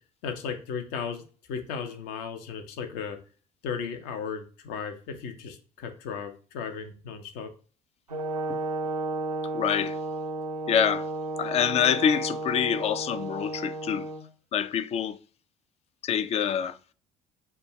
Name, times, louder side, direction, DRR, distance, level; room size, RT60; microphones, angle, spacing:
voice 1, 0.2-1.2 1.5-3.2 3.6-7.5, left 6 dB, 55° left, 0.7 m, -35 dB
Brass instrument, 8.1-14.2, right 2 dB, 85° right, 0.6 m, -33 dB
voice 2, 9.5-10.0 10.7-11.1 11.4-14.1 14.5-15.2 16.0-16.8, left 8 dB, 35° left, 0.4 m, -26 dB
6.7 x 2.3 x 3.0 m
figure-of-eight pair, 55°, 19 cm